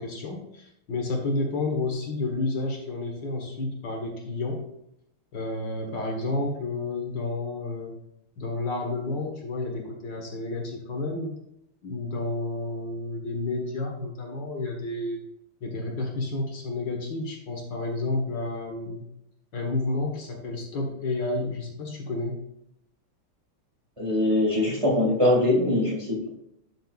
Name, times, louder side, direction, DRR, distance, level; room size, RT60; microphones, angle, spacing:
voice 1, 0.0-4.6 5.3-7.9 8.4-11.4 11.8-15.2 15.6-19.0 19.5-22.4, left 2 dB, 60° left, 1 dB, 2.1 m, -30 dB
voice 2, 24.0-26.3, left 1 dB, 15° right, -3 dB, 2.1 m, -22 dB
12.0 x 6.6 x 2.4 m, 0.78 s
omnidirectional pair, 2.3 m